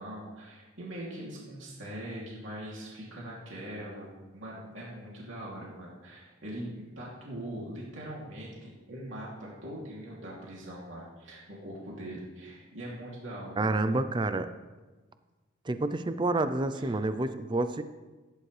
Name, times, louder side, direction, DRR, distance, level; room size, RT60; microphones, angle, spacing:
voice 1, 0.0-13.6 16.8-17.0, right 1 dB, 65° right, -5 dB, 2.9 m, -42 dB
voice 2, 13.6-14.5 15.6-17.8, right 2 dB, 20° right, 10 dB, 0.4 m, -28 dB
15.5 x 10.5 x 3.3 m, 1.2 s
head